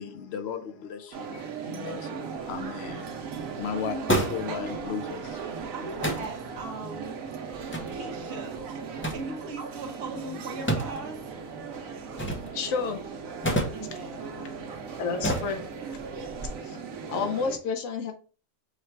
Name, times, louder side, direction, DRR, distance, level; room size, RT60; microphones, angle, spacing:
voice 1, 0.0-5.4, left 7 dB, 60° left, 0.8 m, -36 dB
sound 1, 1.1-17.6, right 5 dB, 90° right, 1.2 m, -38 dB
sound 2, 2.4-16.5, right 1 dB, 15° left, 0.4 m, -35 dB
voice 2, 3.7-4.2 4.5-4.8 5.7-7.2 7.9-11.3 13.7-14.3, right 2 dB, 60° right, 0.9 m, -39 dB
voice 3, 12.5-13.0 15.0-15.6 16.6-16.8 17.1-18.1, left 5 dB, 90° left, 1.1 m, -30 dB
4.8 x 2.2 x 4.4 m
omnidirectional pair, 1.4 m